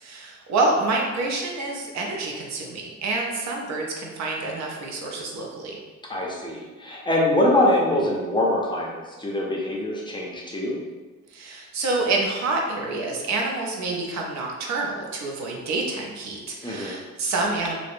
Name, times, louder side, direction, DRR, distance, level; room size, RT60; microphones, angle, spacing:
voice 1, 0.0-5.8 11.3-17.8, right 3 dB, 65° right, 0 dB, 0.5 m, -27 dB
voice 2, 6.1-10.8 16.6-17.0, left 1 dB, 15° left, -3 dB, 0.5 m, -24 dB
2.6 x 2.0 x 2.5 m, 1.3 s
cardioid pair, 90°, 30 cm